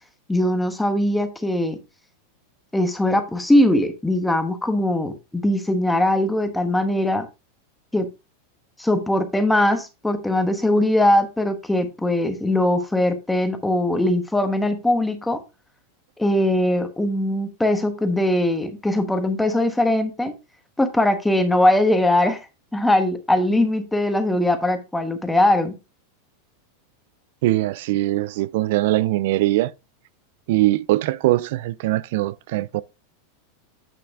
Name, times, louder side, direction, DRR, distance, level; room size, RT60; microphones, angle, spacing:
voice 1, 0.3-1.8 2.7-7.3 7.9-8.1 8.8-15.4 16.2-20.3 20.8-22.5 22.7-25.7, left 1 dB, 5° left, 1.2 m, -20 dB
voice 2, 27.4-29.7 30.5-32.8, right 17 dB, 65° right, 0.5 m, -21 dB
8.8 x 5.8 x 3.6 m
supercardioid pair, 145°, 0 cm